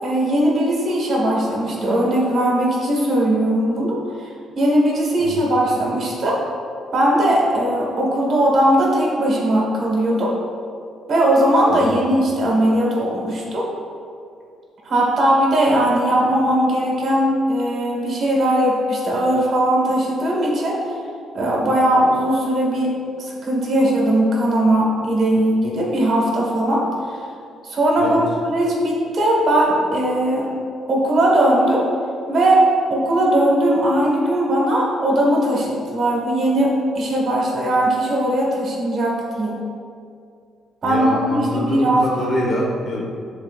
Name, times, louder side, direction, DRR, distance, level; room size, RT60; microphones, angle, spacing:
voice 1, 0.0-6.4 6.9-10.4 11.1-13.7 14.8-20.8 21.3-27.2 27.6-30.5 30.9-31.9 32.3-32.6 32.9-39.6 40.8-42.3, right 1 dB, 45° right, -3 dB, 1.4 m, -19 dB
voice 2, 40.8-43.0, equal, 40° left, -2 dB, 1.2 m, -25 dB
9.2 x 4.2 x 2.4 m, 2.3 s
cardioid pair, 140°, 0 cm